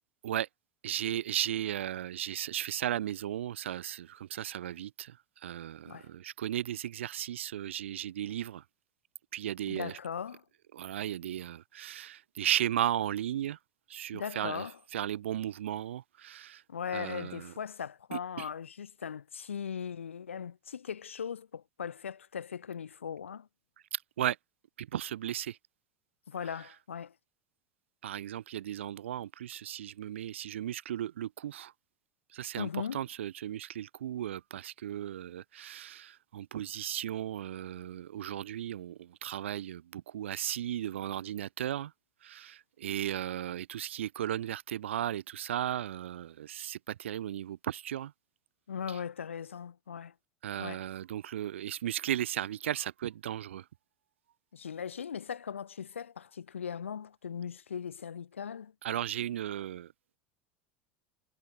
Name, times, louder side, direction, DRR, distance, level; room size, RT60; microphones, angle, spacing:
voice 1, 0.8-5.1 5.4-8.6 9.3-9.9 10.7-13.6 13.9-14.6 14.9-16.6 16.9-17.5 18.1-18.5 24.2-24.4 24.8-25.6 28.0-31.7 32.3-41.9 42.2-48.1 50.4-53.6 58.8-59.9, right 11 dB, 65° right, 0.6 m, -35 dB
voice 2, 9.7-10.4 14.1-14.8 16.7-23.5 26.3-27.1 32.6-33.0 48.7-50.1 50.6-50.9 54.5-58.7, left 7 dB, 75° left, 1.5 m, -39 dB
figure-of-eight pair, 75°, 7 cm